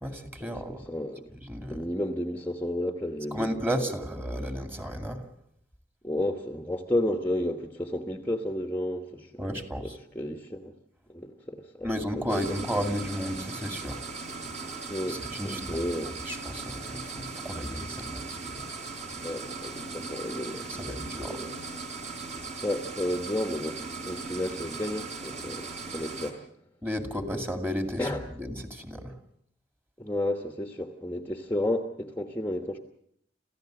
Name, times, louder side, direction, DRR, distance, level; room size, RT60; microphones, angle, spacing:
voice 1, 0.0-0.8 1.4-1.9 3.3-5.2 9.4-9.9 11.8-14.0 15.0-15.9 16.3-18.6 20.8-21.4 26.8-28.1 28.4-29.1, equal, 10° right, 2.3 m, -33 dB
voice 2, 0.7-1.3 1.7-3.5 6.0-10.7 11.1-11.9 12.2-12.6 14.9-16.2 19.2-21.1 21.4-21.5 22.6-26.4 28.0-28.2 30.0-32.8, left 1 dB, 10° left, 1.2 m, -32 dB
sound 1, 12.3-26.3, right 4 dB, 40° right, 4.0 m, -38 dB
28.0 x 15.5 x 7.7 m
head